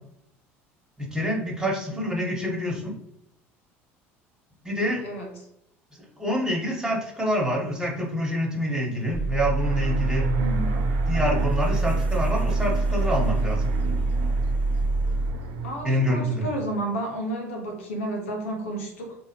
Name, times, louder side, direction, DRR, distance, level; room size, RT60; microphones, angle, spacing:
voice 1, 1.0-2.9 4.6-5.0 6.2-10.3 11.1-13.7 15.8-16.5, equal, 10° right, -2 dB, 1.3 m, -26 dB
voice 2, 1.9-2.4 5.0-5.3 10.4-10.9 15.6-19.2, right 1 dB, 85° left, 2 dB, 0.8 m, -32 dB
sound 1, 9.1-15.3, right 2 dB, 25° left, 0.5 m, -25 dB
sound 2, 9.6-15.7, right 4 dB, 70° right, 0.6 m, -33 dB
3.4 x 2.1 x 2.9 m, 0.74 s
hypercardioid pair, 70°, 7 cm